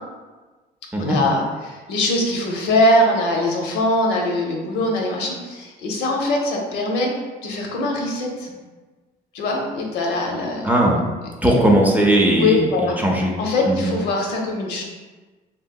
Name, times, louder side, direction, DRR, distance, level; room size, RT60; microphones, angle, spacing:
voice 1, 1.0-7.1 7.4-8.5 9.3-10.7 12.3-13.0 13.4-14.8, left 1 dB, 85° left, 0 dB, 0.6 m, -22 dB
voice 2, 10.6-11.0 11.4-13.3 13.7-13.9, right 1 dB, 10° right, -1 dB, 0.4 m, -18 dB
2.9 x 2.7 x 2.2 m, 1.3 s
cardioid pair, 110°, 17 cm